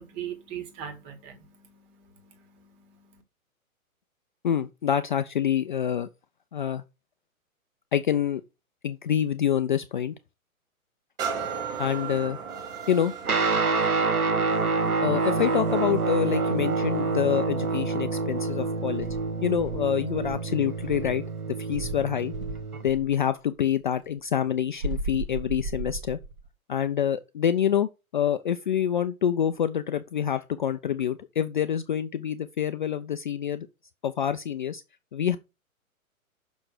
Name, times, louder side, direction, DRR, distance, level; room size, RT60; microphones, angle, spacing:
voice 1, 0.0-3.2, right 9 dB, 25° right, 1.9 m, -41 dB
voice 2, 4.4-6.1 6.5-6.8 7.9-8.4 8.8-10.1 11.8-12.4 12.9-13.1 15.0-19.1 19.4-21.2 21.6-22.3 22.8-26.2 26.7-33.7 34.0-34.8 35.1-35.4, left 9 dB, 35° left, 0.5 m, -26 dB
sound 1, 11.2-18.8 19.4-19.5, right 6 dB, 10° right, 0.6 m, -38 dB
Guitar, 13.2-22.9, right 4 dB, 85° right, 1.1 m, -27 dB
Insect, 19.0-21.3 21.7-23.2 24.8-26.5, right 2 dB, 70° right, 2.4 m, -35 dB
6.2 x 5.7 x 6.4 m
figure-of-eight pair, 125°, 43 cm